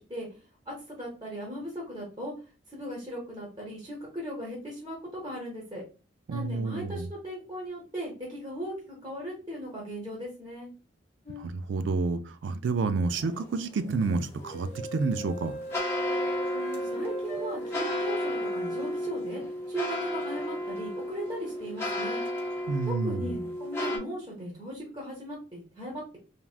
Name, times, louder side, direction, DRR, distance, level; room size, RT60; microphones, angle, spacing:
voice 1, 0.7-2.3 2.7-5.8 6.3-10.7 16.5-19.4 19.7-22.2 22.9-26.2, right 1 dB, 20° right, 0.8 m, -38 dB
voice 2, 6.3-7.1 11.4-15.5 22.7-23.3, right 4 dB, 70° right, 0.3 m, -29 dB
sound 1, 11.3-11.5 14.4-18.0, right 2 dB, 30° left, 0.8 m, -40 dB
sound 2, 13.1-24.0, left 1 dB, 15° left, 0.5 m, -33 dB
3.4 x 2.3 x 2.4 m
head